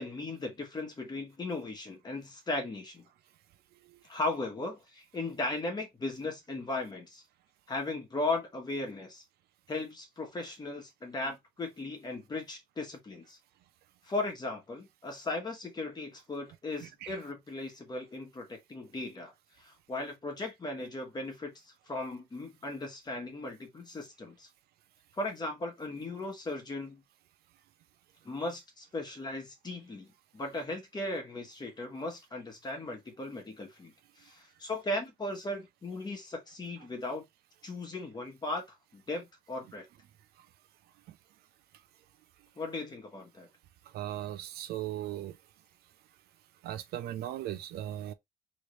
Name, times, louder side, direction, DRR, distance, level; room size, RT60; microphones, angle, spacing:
voice 1, 0.0-3.0 4.0-7.2 7.7-9.2 9.7-13.4 14.0-19.3 19.6-21.5 21.9-24.5 25.2-27.0 28.2-37.2 37.6-38.6 38.9-39.9 42.6-43.5, left 2 dB, 25° left, 1.3 m, -37 dB
voice 2, 16.8-17.2 43.9-45.4 46.6-48.1, right 12 dB, 70° right, 0.5 m, -38 dB
3.1 x 2.6 x 3.1 m
cardioid pair, 110°, 17 cm